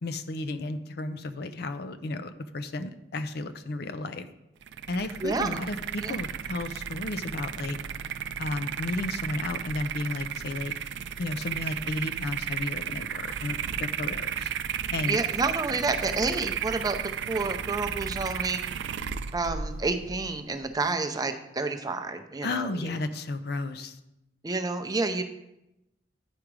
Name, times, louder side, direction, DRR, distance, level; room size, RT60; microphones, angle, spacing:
voice 1, 0.0-4.3 4.9-7.8 8.4-10.7 11.2-14.5 14.9-15.2 22.4-24.0, left 2 dB, 65° left, 11 dB, 0.5 m, -33 dB
sound 1, 4.6-21.0, right 8 dB, 80° right, 0.4 m, -34 dB
voice 2, 5.2-5.6 6.0-6.2 15.1-18.6 19.3-22.9 24.4-25.2, right 3 dB, 20° right, 7 dB, 0.6 m, -29 dB
9.8 x 5.0 x 4.7 m, 0.88 s
head